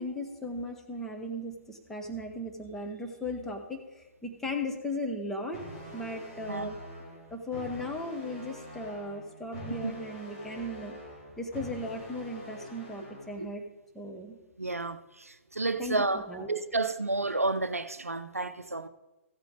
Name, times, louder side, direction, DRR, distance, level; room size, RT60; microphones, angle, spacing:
voice 1, 0.0-5.6 5.9-6.8 7.3-10.9 11.4-13.6 13.9-14.4 15.8-16.5, left 1 dB, 5° left, 1.1 m, -37 dB
sound 1, 5.5-13.5, left 1 dB, 30° left, 3.5 m, -45 dB
voice 2, 14.6-18.9, right 2 dB, 85° right, 0.5 m, -31 dB
14.5 x 8.1 x 3.9 m
figure-of-eight pair, 125°, 8 cm